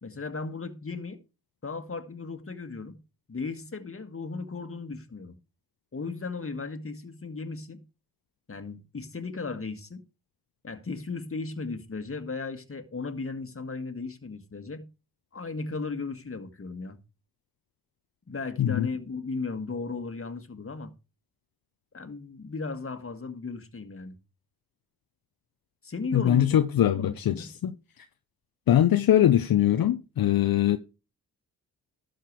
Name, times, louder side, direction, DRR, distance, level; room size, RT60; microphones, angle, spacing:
voice 1, 0.0-1.2 1.6-3.0 3.3-5.3 5.9-7.8 8.5-10.0 10.6-14.8 15.3-17.0 18.3-20.9 21.9-24.2 25.8-26.5 26.8-27.5, left 4 dB, 35° left, 1.8 m, -36 dB
voice 2, 26.1-27.7 28.7-30.8, left 11 dB, 65° left, 0.8 m, -22 dB
12.5 x 6.7 x 4.7 m
supercardioid pair, 50°, 38 cm